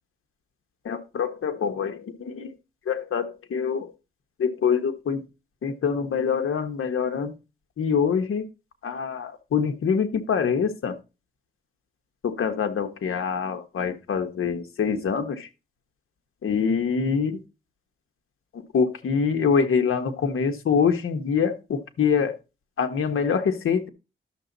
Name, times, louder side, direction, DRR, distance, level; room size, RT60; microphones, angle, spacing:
voice 1, 0.8-2.5 2.9-3.9 4.4-5.2 5.6-7.3 7.8-8.4 8.8-11.0 12.2-15.5 16.4-17.4 18.7-22.3 22.8-23.9, left 6 dB, 90° left, 7 dB, 1.4 m, -25 dB
12.0 x 7.0 x 4.1 m, 0.29 s
wide cardioid pair, 105°, 21 cm